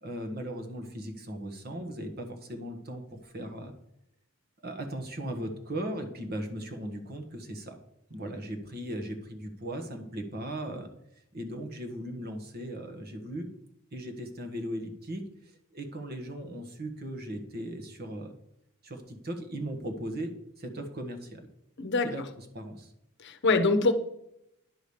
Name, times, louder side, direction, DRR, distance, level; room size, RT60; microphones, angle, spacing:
voice 1, 0.0-3.7 4.6-7.8 8.1-10.9 11.3-13.5 13.9-18.3 18.8-21.4 22.0-22.9, right 1 dB, 45° right, 6 dB, 1.4 m, -38 dB
voice 2, 21.8-22.1 23.2-23.9, left 3 dB, 55° left, 8 dB, 0.9 m, -24 dB
10.0 x 5.0 x 7.1 m, 0.79 s
head